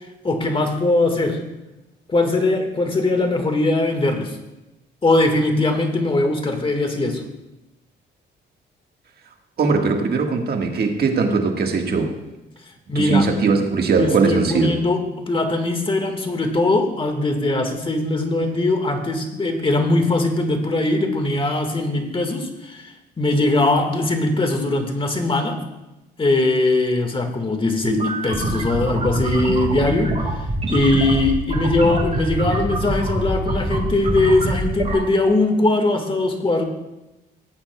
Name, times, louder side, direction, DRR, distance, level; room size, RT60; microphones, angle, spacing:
voice 1, 0.2-1.4 2.1-4.4 5.0-7.2 12.9-13.3 13.9-25.6 26.2-30.2 30.7-36.6, left 2 dB, 25° left, 5 dB, 1.6 m, -20 dB
voice 2, 9.6-12.1 12.9-14.8, right 4 dB, 50° right, 3 dB, 1.5 m, -20 dB
sound 1, 27.8-35.0, right 2 dB, 35° right, 4.1 m, -25 dB
17.5 x 8.6 x 2.2 m, 0.98 s
cardioid pair, 90°, 20 cm